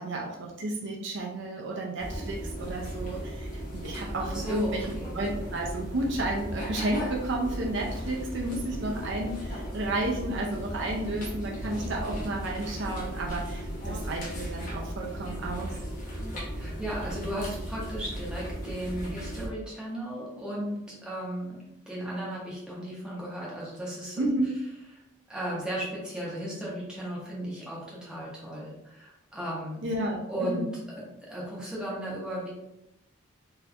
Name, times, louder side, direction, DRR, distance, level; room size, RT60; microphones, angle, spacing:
voice 1, 0.0-15.7 24.2-24.5 29.8-30.7, right 1 dB, 60° right, -1 dB, 0.5 m, -32 dB
sound 1, 2.0-19.5, equal, 40° left, 0.9 m, -36 dB
voice 2, 3.9-5.2 16.5-21.6 21.9-24.3 25.3-29.8 30.3-30.6 31.0-32.5, equal, 5° right, -6 dB, 0.9 m, -35 dB
4.0 x 2.5 x 2.7 m, 0.87 s
head